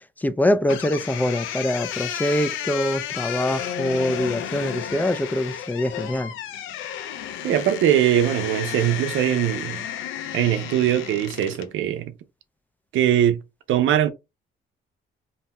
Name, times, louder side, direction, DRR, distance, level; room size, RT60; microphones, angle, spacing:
voice 1, 0.2-6.3, left 1 dB, 10° left, 0.3 m, -24 dB
sound 1, 0.7-11.7, left 10 dB, 85° left, 0.4 m, -32 dB
voice 2, 7.4-9.8 10.3-12.1 12.9-13.4 13.7-14.1, right 11 dB, 80° right, 0.5 m, -21 dB
2.7 x 2.1 x 2.9 m
cardioid pair, 90°, 20 cm